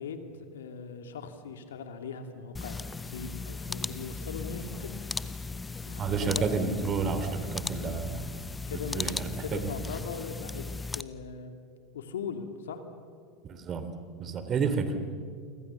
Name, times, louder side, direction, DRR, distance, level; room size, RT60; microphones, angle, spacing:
voice 1, 0.0-5.0 5.9-6.4 7.8-8.0 8.7-10.6 10.9-11.5 11.9-12.8 14.5-14.6, left 6 dB, 75° left, 7 dB, 2.5 m, -40 dB
sound 1, 2.5-11.0, left 3 dB, 15° left, 1.0 m, -37 dB
voice 2, 6.0-8.2 8.9-9.6 13.5-13.8 14.2-14.9, right 5 dB, 35° right, 10 dB, 3.2 m, -30 dB
29.5 x 25.0 x 7.0 m, 2.2 s
hypercardioid pair, 85°, 0 cm